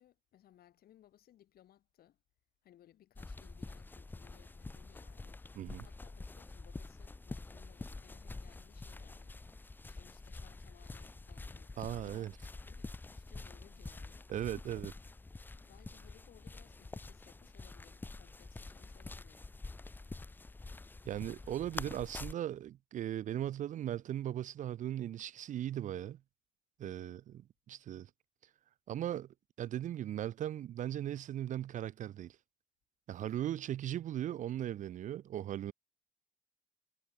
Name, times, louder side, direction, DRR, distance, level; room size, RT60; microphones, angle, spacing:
voice 1, 0.0-2.2 2.6-5.4 5.8-11.8 12.1-14.3 14.7-14.9 15.6-19.5 26.8-27.2 33.1-33.6, left 12 dB, 65° left, 7.1 m, -64 dB
sound 1, 3.2-22.3, left 3 dB, 10° left, 0.5 m, -47 dB
voice 2, 11.8-12.3 14.3-14.9 21.0-26.2 26.8-27.2 27.7-28.1 28.9-32.4 33.1-35.7, right 11 dB, 50° right, 0.5 m, -38 dB
cardioid pair, 110°, 17 cm